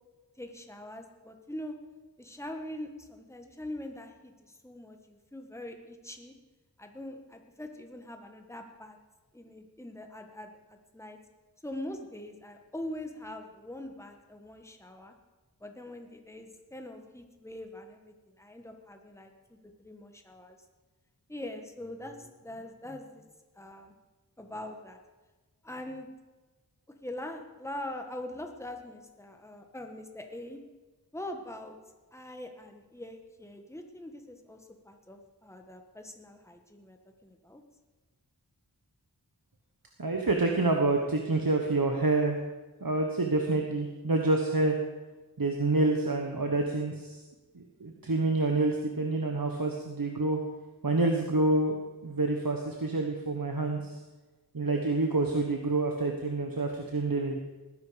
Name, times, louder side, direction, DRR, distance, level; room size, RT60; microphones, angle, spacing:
voice 1, 0.4-1.7 2.2-6.3 6.8-9.0 9.3-11.2 11.6-15.1 15.6-19.3 19.8-20.6 21.3-23.3 23.6-23.9 24.4-25.0 25.6-26.1 27.0-30.6 31.1-31.8 32.1-37.6, left 1 dB, 5° left, 4 dB, 1.5 m, -43 dB
voice 2, 40.0-42.4 42.8-44.8 45.4-47.2 47.5-50.4 50.8-51.8 52.0-54.0 54.5-57.4, right 2 dB, 60° right, 2 dB, 1.3 m, -27 dB
19.0 x 10.5 x 5.1 m, 1.2 s
wide cardioid pair, 40°, 40 cm